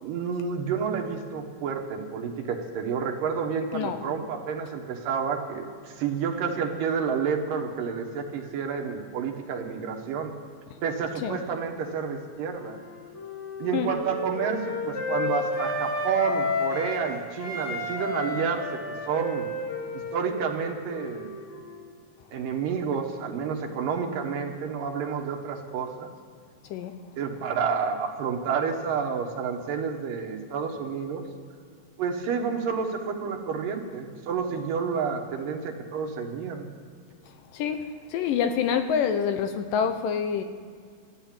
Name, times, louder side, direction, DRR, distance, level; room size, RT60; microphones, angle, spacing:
voice 1, 0.0-10.4 10.8-12.8 13.6-19.5 20.1-21.3 22.3-26.1 27.2-31.3 32.0-36.7, right 6 dB, 70° right, 3 dB, 2.8 m, -30 dB
Wind instrument woodwind instrument, 12.5-17.0 17.4-21.9, left 2 dB, 50° left, 3.8 m, -32 dB
voice 2, 37.5-40.4, left 7 dB, 75° left, 8 dB, 2.3 m, -27 dB
14.0 x 10.0 x 8.8 m, 2.1 s
omnidirectional pair, 4.3 m